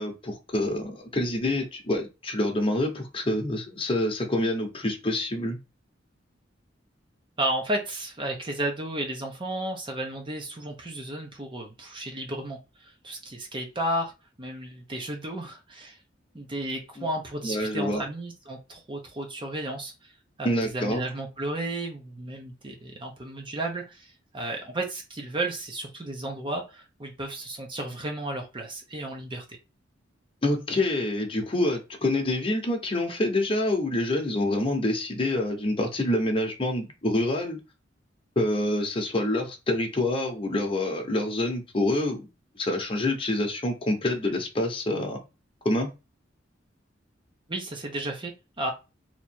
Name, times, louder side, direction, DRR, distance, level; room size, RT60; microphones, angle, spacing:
voice 1, 0.0-5.6 17.0-17.1 17.4-18.0 20.4-21.0 30.4-37.6 38.4-42.3 42.5-45.2 45.6-45.9, left 1 dB, 30° left, 2 dB, 0.9 m, -27 dB
voice 2, 7.4-14.1 14.4-16.0 16.3-20.1 20.4-29.4 47.5-48.7, right 1 dB, 25° right, 2 dB, 0.8 m, -33 dB
3.0 x 2.6 x 4.3 m, 0.27 s
head